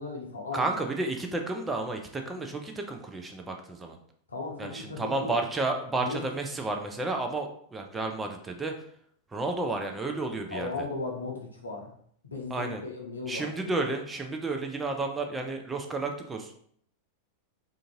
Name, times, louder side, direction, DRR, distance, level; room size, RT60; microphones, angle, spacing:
voice 1, 0.0-0.7 4.3-5.4 6.0-6.2 10.5-11.9 12.2-13.6, left 3 dB, 75° left, 0 dB, 0.6 m, -36 dB
voice 2, 0.5-4.0 4.6-8.9 9.3-10.9 12.5-12.8 13.3-16.5, right 2 dB, 15° right, 3 dB, 0.4 m, -32 dB
2.5 x 2.4 x 2.8 m, 0.63 s
figure-of-eight pair, 90°, 0 cm